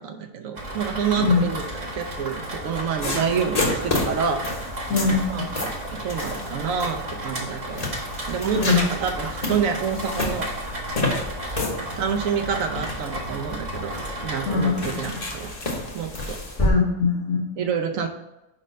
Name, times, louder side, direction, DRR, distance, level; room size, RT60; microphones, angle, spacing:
voice 1, 0.0-4.7 5.3-7.9 8.3-10.5 12.0-13.9 14.2-15.5 15.9-16.4 17.6-18.1, right 7 dB, 70° right, 5 dB, 1.1 m, -28 dB
Rain, 0.6-15.5, right 1 dB, 35° right, 0.8 m, -33 dB
sound 1, 3.0-16.7, left 2 dB, 30° left, 1.0 m, -31 dB
voice 2, 4.9-5.4 8.5-8.8 14.5-14.8 16.6-17.4, left 5 dB, 75° left, -1 dB, 1.9 m, -21 dB
5.1 x 4.3 x 5.4 m, 0.98 s
omnidirectional pair, 1.5 m